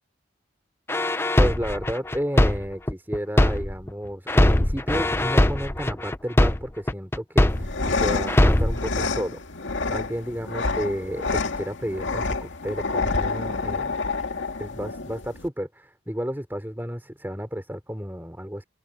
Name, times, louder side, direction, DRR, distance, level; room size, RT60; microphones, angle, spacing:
sound 1, 0.9-3.9 4.3-7.9 8.3-8.9, left 1 dB, 10° left, 0.6 m, -20 dB
voice 1, 1.4-9.4 9.9-11.3 11.6-14.0 14.6-18.6, equal, 10° right, 3.5 m, -32 dB
sound 2, 7.5-15.5, left 3 dB, 80° left, 2.1 m, -28 dB
head